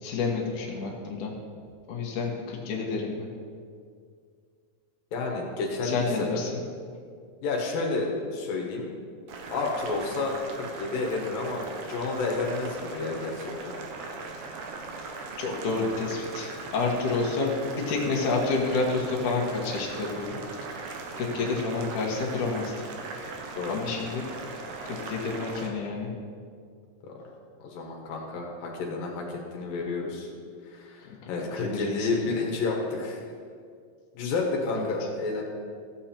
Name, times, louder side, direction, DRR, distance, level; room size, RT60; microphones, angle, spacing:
voice 1, 0.0-1.3 1.9-3.3 5.8-6.5 15.4-20.3 21.2-22.7 23.7-24.3 24.9-26.1 31.6-32.4 34.8-34.9, left 3 dB, 70° left, -1 dB, 2.8 m, -29 dB
voice 2, 5.1-6.4 7.4-8.9 9.5-13.7 23.5-23.8 27.0-27.1 27.6-30.3 30.7-33.2 34.1-35.4, left 3 dB, 90° left, -1 dB, 3.1 m, -30 dB
Boiling, 9.3-25.7, right 3 dB, 70° right, 2.3 m, -39 dB
14.5 x 7.6 x 4.4 m, 2.2 s
omnidirectional pair, 3.9 m